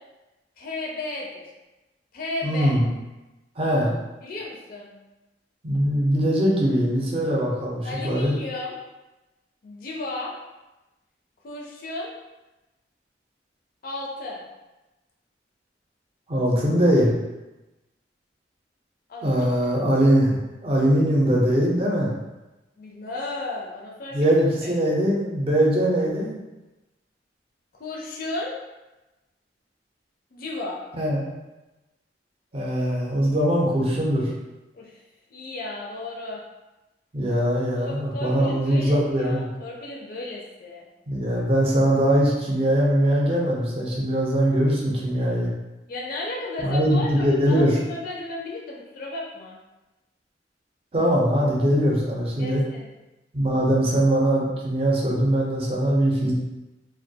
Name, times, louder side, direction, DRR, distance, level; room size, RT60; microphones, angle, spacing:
voice 1, 0.6-1.5 2.1-2.8 4.2-4.9 7.8-8.7 9.6-10.3 11.4-12.1 13.8-14.4 19.1-19.7 22.8-24.2 24.6-24.8 27.8-28.5 30.3-30.8 34.7-35.0 35.3-36.4 37.7-40.8 45.9-49.6 52.4-52.9, left 2 dB, 55° left, -2 dB, 0.4 m, -34 dB
voice 2, 2.4-2.8 3.6-3.9 5.6-8.3 16.3-17.1 19.2-20.3 20.6-22.1 24.1-26.3 31.0-31.3 32.5-34.3 37.1-39.5 41.1-45.5 46.6-47.8 50.9-52.6 53.3-56.3, equal, 35° right, -3 dB, 0.5 m, -21 dB
2.2 x 2.2 x 2.6 m, 1.0 s
head